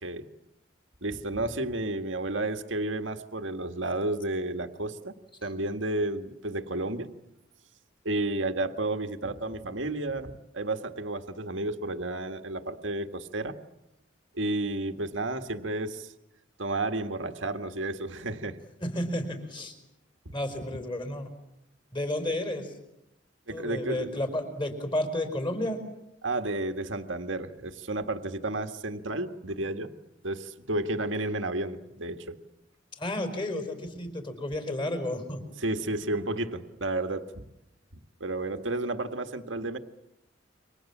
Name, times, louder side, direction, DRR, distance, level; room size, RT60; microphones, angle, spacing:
voice 1, 1.0-7.1 8.1-13.6 14.3-16.1 16.6-18.6 20.3-20.4 23.5-24.1 26.2-30.0 30.2-32.4 35.6-37.5 38.2-39.8, right 2 dB, 80° right, 7 dB, 1.8 m, -32 dB
voice 2, 18.8-19.7 20.3-21.3 21.9-22.7 23.5-25.8 33.0-35.4, left 1 dB, 25° left, 7 dB, 4.8 m, -32 dB
29.0 x 25.0 x 7.4 m, 0.87 s
head